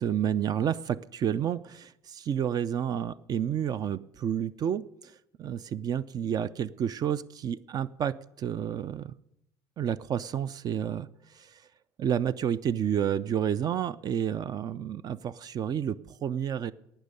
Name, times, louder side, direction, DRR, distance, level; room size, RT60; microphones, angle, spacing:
voice 1, 0.0-9.1 9.8-11.6 12.0-16.7, right 9 dB, 40° right, 16 dB, 0.4 m, -30 dB
11.5 x 9.0 x 6.8 m, 0.82 s
cardioid pair, 125°, 10 cm